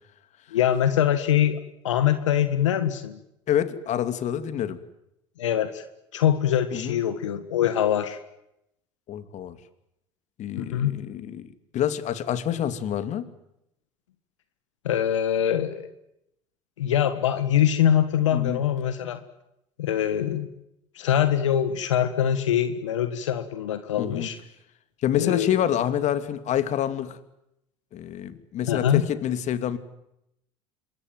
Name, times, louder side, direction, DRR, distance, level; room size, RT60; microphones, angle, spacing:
voice 1, 0.5-3.2 5.4-5.8 6.1-8.2 10.6-11.0 14.9-15.9 16.8-19.2 19.8-20.5 21.0-24.4 25.1-25.5 28.7-29.0, left 10 dB, 90° left, 11 dB, 1.7 m, -23 dB
voice 2, 3.5-4.8 6.7-7.0 9.1-9.6 10.4-13.3 18.3-18.6 24.0-24.3 25.0-27.2 27.9-29.8, left 10 dB, 50° left, 12 dB, 2.7 m, -27 dB
26.5 x 22.5 x 9.2 m, 0.82 s
hypercardioid pair, 80°, 15 cm